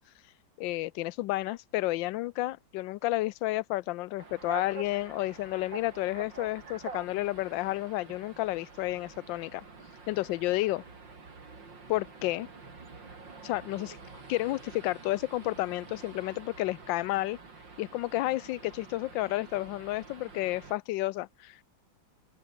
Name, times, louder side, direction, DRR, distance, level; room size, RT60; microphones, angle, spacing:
voice 1, 0.6-9.6 10.1-10.8 11.9-12.5 13.4-14.0 14.3-17.4 17.8-21.6, left 17 dB, 80° left, 1.3 m, -31 dB
sound 1, 4.2-20.7, right 4 dB, 70° right, 4.4 m, -47 dB
open air
omnidirectional pair, 2.1 m